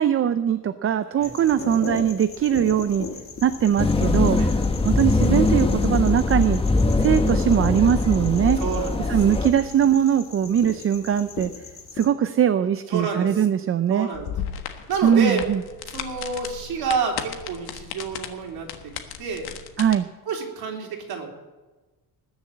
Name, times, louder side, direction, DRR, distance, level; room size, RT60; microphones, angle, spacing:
voice 1, 0.0-3.1 3.4-4.4 4.8-6.6 7.0-8.6 9.1-11.5 11.9-14.1 15.0-15.6 19.8-20.1, right 9 dB, 35° right, 11 dB, 0.5 m, -21 dB
sound 1, 1.2-12.1, left 4 dB, 35° left, 2.0 m, -37 dB
sound 2, 3.8-9.5, left 3 dB, 15° left, 1.0 m, -22 dB
voice 2, 8.6-9.2 12.9-13.5 13.9-14.3 14.9-15.5 15.9-18.9 19.2-19.5 19.9-20.0 20.3-21.3, right 5 dB, 70° right, 1 dB, 3.7 m, -28 dB
sound 3, 14.1-19.9, left 9 dB, 70° left, 1.6 m, -35 dB
20.0 x 7.3 x 7.6 m, 1.2 s
cardioid pair, 135°, 40 cm